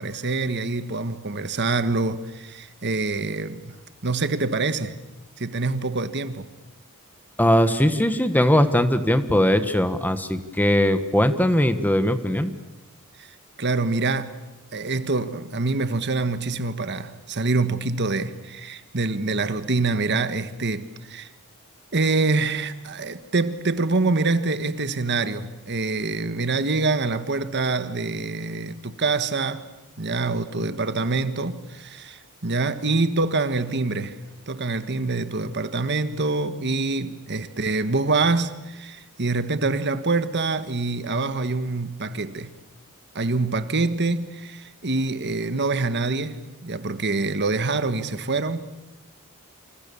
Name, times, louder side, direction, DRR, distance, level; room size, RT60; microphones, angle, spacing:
voice 1, 0.0-3.7 4.0-5.0 5.4-6.5 13.2-13.3 13.6-14.4 14.7-21.3 21.9-29.7 30.0-34.2 34.5-42.5 43.1-48.7, right 3 dB, 50° right, 1.5 m, -25 dB
voice 2, 7.4-12.5, equal, 10° left, 1.4 m, -20 dB
27.5 x 27.0 x 7.1 m
head